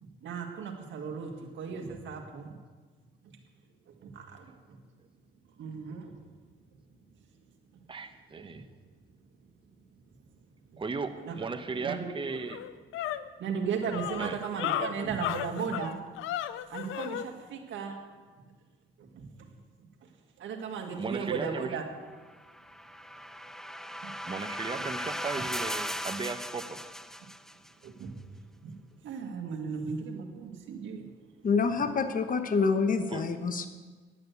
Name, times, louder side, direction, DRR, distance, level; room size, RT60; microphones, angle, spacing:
voice 1, 0.0-2.6 3.9-4.8 5.6-6.1 8.4-8.6 10.7-10.8 11.2-11.3 11.8-12.1 13.4-16.0 16.7-18.0 19.0-19.5 19.8-19.9 20.4-21.9 24.0-24.1 27.8-28.2 28.6-28.8 29.0-31.1, right 6 dB, 75° right, 4 dB, 1.9 m, -36 dB
voice 2, 7.9-8.6 10.8-12.6 14.2-14.4 21.0-21.8 24.2-26.8 33.1-33.2, right 4 dB, 25° right, 7 dB, 0.9 m, -36 dB
sound 1, 11.8-11.9 12.3-17.3, left 12 dB, 90° left, 0.5 m, -35 dB
sound 2, 22.4-27.7, equal, ahead, 0.6 m, -37 dB
voice 3, 31.4-33.7, left 5 dB, 45° left, 8 dB, 1.2 m, -27 dB
11.0 x 8.9 x 8.1 m, 1.4 s
cardioid pair, 90°, 20 cm